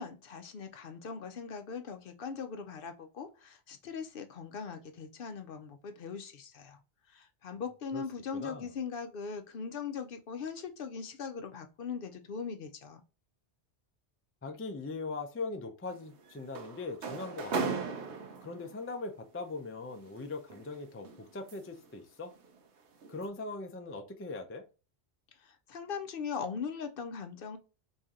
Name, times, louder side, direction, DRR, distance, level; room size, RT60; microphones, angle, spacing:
voice 1, 0.0-6.8 7.1-13.0 25.3-27.6, left 6 dB, 60° left, 0.7 m, -40 dB
voice 2, 8.3-8.7 14.4-17.8 18.4-21.1 21.3-22.3 23.1-24.6, left 3 dB, 20° left, 0.3 m, -40 dB
sound 1, 15.9-18.8 19.9-21.9 22.3-22.6 23.0-23.2, right 4 dB, 80° right, 1.0 m, -38 dB
3.1 x 2.7 x 3.6 m
omnidirectional pair, 1.1 m